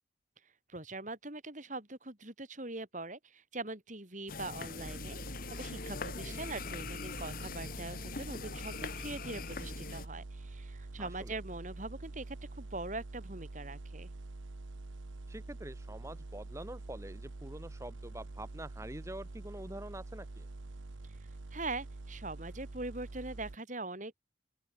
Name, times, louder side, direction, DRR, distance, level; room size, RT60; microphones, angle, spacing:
voice 1, 0.7-5.2 5.5-14.1 21.5-24.2, right 2 dB, 40° right, 3.9 m, -42 dB
sound 1, 4.3-10.1, left 4 dB, 50° left, 1.0 m, -42 dB
sound 2, 4.8-23.6, right 2 dB, 90° right, 1.0 m, -46 dB
voice 2, 11.0-11.3 15.3-20.5, right 1 dB, 15° right, 2.2 m, -46 dB
open air
head